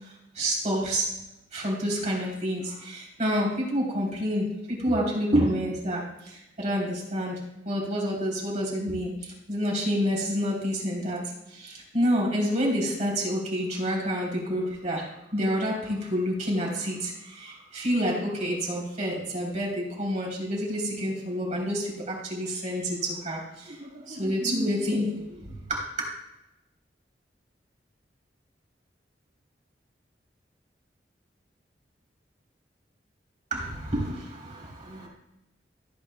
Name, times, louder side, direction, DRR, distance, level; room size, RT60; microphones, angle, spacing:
voice 1, 0.3-1.1 1.5-7.4 7.6-11.2 11.5-15.0 15.3-25.8 33.5-35.1, equal, 45° right, -3 dB, 3.3 m, -28 dB
15.5 x 8.4 x 2.2 m, 0.90 s
head